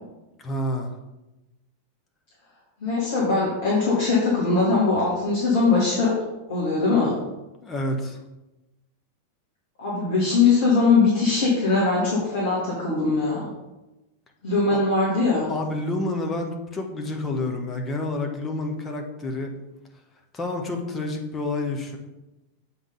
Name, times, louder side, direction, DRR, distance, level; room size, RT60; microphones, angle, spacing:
voice 1, 0.4-0.9 7.6-8.2 14.7-14.8 15.5-19.5 20.3-22.0, left 2 dB, 20° left, 2 dB, 1.2 m, -29 dB
voice 2, 2.8-6.1 6.5-7.2 9.8-13.5 14.4-15.5, left 4 dB, 55° left, -6 dB, 2.3 m, -21 dB
7.8 x 3.8 x 5.5 m, 1.0 s
figure-of-eight pair, 90°, 0 cm